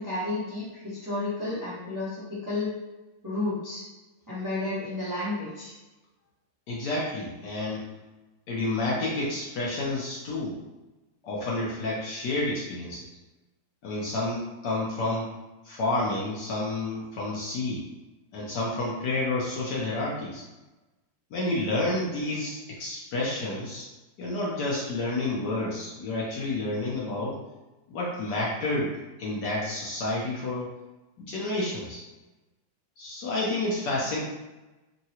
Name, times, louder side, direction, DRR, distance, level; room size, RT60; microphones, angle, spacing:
voice 1, 0.0-2.7 3.2-3.8 4.3-5.8, left 2 dB, 20° right, -10 dB, 0.5 m, -31 dB
voice 2, 6.7-7.9 8.5-10.6 11.2-13.0 13.8-15.3 15.6-17.8 18.3-20.4 21.3-23.9 24.2-27.4 27.9-30.7 31.2-32.0 33.0-34.2, left 2 dB, 65° left, -5 dB, 1.1 m, -30 dB
3.7 x 2.1 x 2.8 m, 1.1 s
omnidirectional pair, 2.2 m